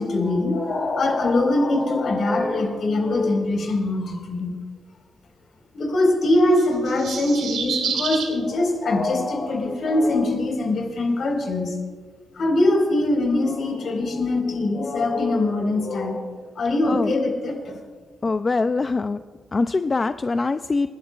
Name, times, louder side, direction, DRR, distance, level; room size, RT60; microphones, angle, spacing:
voice 1, 0.0-4.5 5.7-11.7 12.4-17.8, left 2 dB, 55° left, 1 dB, 4.3 m, -22 dB
sound 1, 6.6-8.3, right 6 dB, 75° right, 4.1 m, -28 dB
voice 2, 16.8-17.1 18.2-19.2 19.5-20.9, left 3 dB, 25° left, 10 dB, 0.3 m, -23 dB
29.5 x 11.0 x 2.4 m, 1.5 s
cardioid pair, 130°, 0 cm